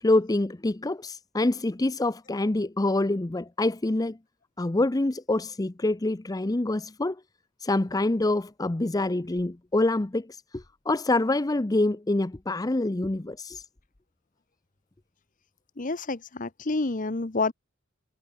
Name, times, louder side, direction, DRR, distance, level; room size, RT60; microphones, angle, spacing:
voice 1, 0.0-4.2 4.6-7.2 7.6-13.6, left 2 dB, 20° left, 0.6 m, -26 dB
voice 2, 15.8-17.5, left 3 dB, 40° left, 1.0 m, -28 dB
head